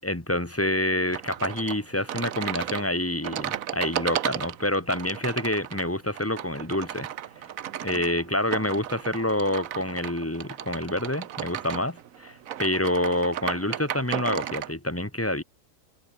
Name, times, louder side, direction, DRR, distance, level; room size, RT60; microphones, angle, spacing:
voice 1, 0.0-7.1 7.8-15.4, left 1 dB, 10° left, 1.8 m, -27 dB
sound 1, 1.1-14.7, right 11 dB, 60° right, 1.1 m, -34 dB
omnidirectional pair, 1.8 m